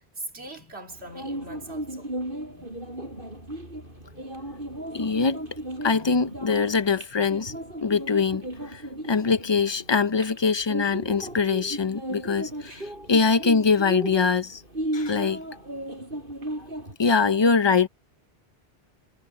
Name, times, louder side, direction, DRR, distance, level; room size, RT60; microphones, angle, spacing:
voice 1, 0.0-2.1, right 1 dB, 85° right, 2.9 m, -41 dB
sound 1, 0.9-16.9, right 1 dB, 55° right, 8.0 m, -35 dB
voice 2, 4.9-5.5 5.8-7.5 7.8-8.4 8.7-8.8 9.1-12.8 13.1-14.6 14.9-15.4 17.0-17.9, left 5 dB, 30° left, 0.7 m, -23 dB
omnidirectional pair, 1.1 m